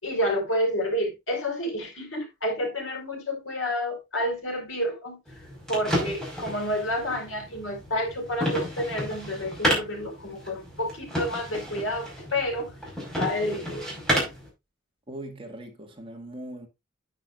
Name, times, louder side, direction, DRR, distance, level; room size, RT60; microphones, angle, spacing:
voice 1, 0.0-5.2 5.7-12.7 13.2-14.0, equal, 90° left, 4.8 m, -29 dB
sound 1, 5.3-14.5, equal, 5° left, 5.2 m, -31 dB
voice 2, 15.1-16.7, right 1 dB, 25° right, 2.1 m, -40 dB
9.7 x 9.5 x 2.6 m
head